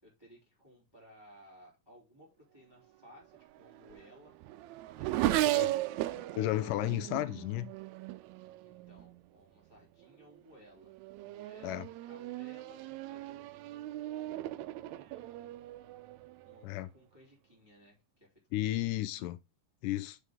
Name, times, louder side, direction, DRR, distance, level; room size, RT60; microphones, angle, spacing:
voice 1, 0.0-4.4 6.9-7.2 8.7-15.5 16.4-18.3 18.6-19.3, equal, 5° right, 2.8 m, -60 dB
Race car auto racing / Accelerating revving vroom, 3.3-9.2 10.0-10.4 10.8-16.7, right 16 dB, 90° right, 1.6 m, -37 dB
voice 2, 6.3-7.7 11.6-11.8 16.6-16.9 18.5-19.4 19.8-20.2, left 15 dB, 80° left, 2.2 m, -33 dB
8.3 x 4.9 x 3.6 m
omnidirectional pair, 3.8 m